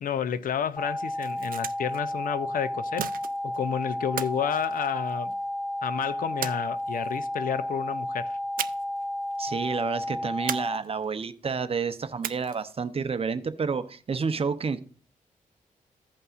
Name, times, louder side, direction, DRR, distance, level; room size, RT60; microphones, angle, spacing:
voice 1, 0.0-3.1 3.4-5.3 5.8-8.4, left 8 dB, 75° left, 0.5 m, -30 dB
sound 1, 0.8-10.8, left 1 dB, 10° left, 0.5 m, -32 dB
sound 2, 1.0-2.0 3.0-3.6 4.2-5.4 6.4-7.2 8.6-9.0 9.3-9.4 10.5-11.2 12.2-12.8, right 10 dB, 80° right, 0.4 m, -36 dB
voice 2, 9.4-14.8, right 5 dB, 40° right, 0.7 m, -30 dB
15.5 x 5.4 x 2.5 m
cardioid pair, 90°, 15 cm